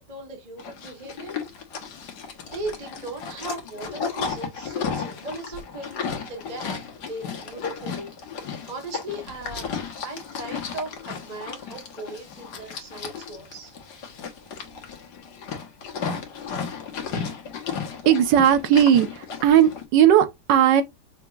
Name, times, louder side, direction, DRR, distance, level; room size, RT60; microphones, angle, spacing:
voice 1, 0.0-1.4 2.4-8.1 8.4-9.7 10.0-13.8 17.9-18.1, right 2 dB, 25° right, 1.0 m, -38 dB
Livestock farm animals working animals, 0.6-19.8, left 6 dB, 65° left, 1.6 m, -34 dB
voice 2, 18.1-20.8, right 10 dB, 80° right, 1.5 m, -17 dB
5.7 x 2.9 x 2.3 m
omnidirectional pair, 1.9 m